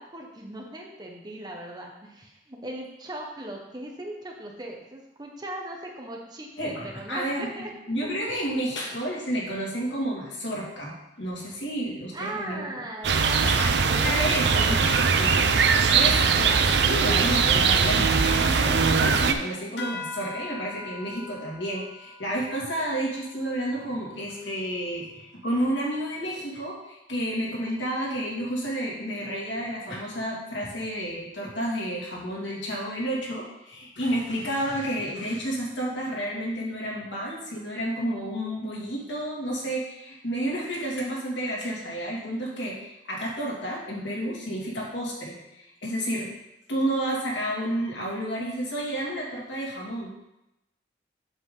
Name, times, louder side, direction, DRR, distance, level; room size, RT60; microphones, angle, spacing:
voice 1, 0.0-7.7 8.0-8.1 12.1-15.1, right 1 dB, 25° right, 0 dB, 1.2 m, -39 dB
voice 2, 6.6-7.5 7.9-12.7 13.1-13.7 14.0-15.5 15.9-16.6 16.9-46.3 46.7-50.1, equal, 90° left, -3 dB, 2.5 m, -31 dB
sound 1, 13.0-19.3, right 5 dB, 70° right, 0.6 m, -21 dB
sound 2, 19.8-24.7, left 3 dB, 70° left, 1.0 m, -42 dB
8.0 x 6.9 x 3.9 m, 0.90 s
head